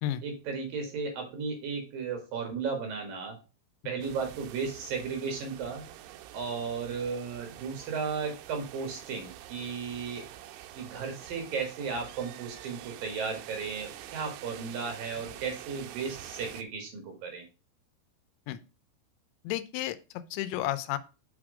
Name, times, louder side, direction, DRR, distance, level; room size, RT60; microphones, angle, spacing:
voice 1, 0.2-3.4 3.8-5.8 6.3-10.3 10.8-17.5, right 5 dB, 60° right, 3 dB, 3.1 m, -35 dB
sound 1, 4.0-16.6, right 12 dB, 80° right, 2.6 m, -47 dB
voice 2, 19.4-21.0, left 13 dB, 85° left, 13 dB, 2.9 m, -32 dB
6.1 x 5.9 x 4.8 m, 0.31 s
omnidirectional pair, 5.3 m